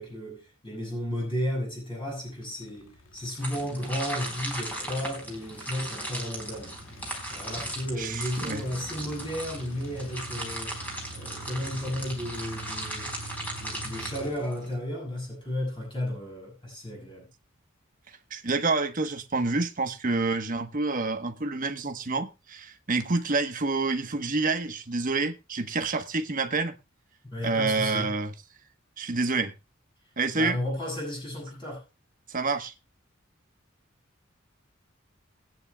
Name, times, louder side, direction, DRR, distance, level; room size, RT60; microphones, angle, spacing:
voice 1, 0.0-6.7 7.3-10.8 11.1-13.1 13.5-17.3 27.2-28.1 30.3-31.8, left 1 dB, 25° left, 6.7 m, -33 dB
sound 1, 2.3-14.3, right 1 dB, 85° left, 1.8 m, -45 dB
sound 2, 3.4-14.8, right 1 dB, 10° left, 4.1 m, -37 dB
voice 2, 8.0-8.6 18.3-26.7 27.4-28.3 29.0-29.5 30.2-30.6 32.3-32.7, right 3 dB, 40° right, 1.2 m, -28 dB
21.0 x 9.5 x 2.3 m
head